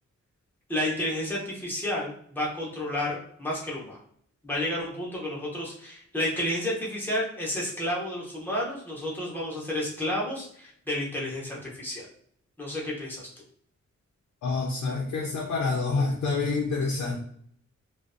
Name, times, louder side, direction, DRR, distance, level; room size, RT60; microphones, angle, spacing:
voice 1, 0.7-4.0 4.4-12.1 12.6-13.3, left 1 dB, 5° left, -6 dB, 0.6 m, -31 dB
voice 2, 14.4-17.2, left 3 dB, 70° left, 0 dB, 0.4 m, -27 dB
2.5 x 2.0 x 2.5 m, 0.63 s
wide cardioid pair, 175°, 30 cm